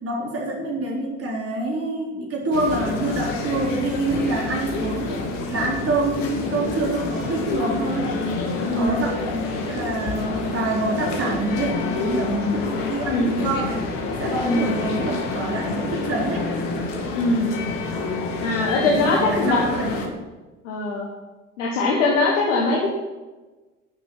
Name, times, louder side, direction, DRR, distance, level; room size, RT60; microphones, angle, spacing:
voice 1, 0.0-5.2 5.5-8.2 8.7-13.9 14.2-16.5 18.8-20.0, right 2 dB, 40° right, -2 dB, 4.2 m, -26 dB
sound 1, 2.5-20.1, left 3 dB, 60° left, 2.3 m, -28 dB
voice 2, 8.7-9.0 13.1-13.4 14.4-14.8 17.1-17.5 18.4-19.6 20.6-21.1 21.6-22.9, left 3 dB, 80° left, -2 dB, 1.5 m, -22 dB
10.5 x 6.6 x 7.2 m, 1.2 s
hypercardioid pair, 60°, 36 cm